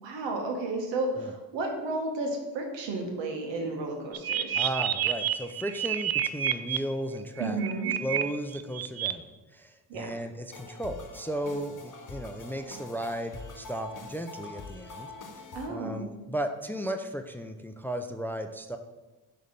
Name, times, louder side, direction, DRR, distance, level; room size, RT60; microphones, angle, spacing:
voice 1, 0.0-4.7 7.4-7.9 9.9-10.1 15.5-16.1, right 2 dB, 85° right, 2 dB, 1.4 m, -32 dB
sound 1, 4.1-6.8 7.4-8.2 8.5-9.1, right 11 dB, 60° right, 0.5 m, -28 dB
voice 2, 4.6-7.6 8.0-15.1 15.7-18.8, right 1 dB, 5° left, 6 dB, 0.4 m, -35 dB
sound 2, 10.5-15.7, left 3 dB, 45° left, 1.1 m, -45 dB
6.5 x 3.4 x 5.2 m, 1.1 s
supercardioid pair, 65°, 43 cm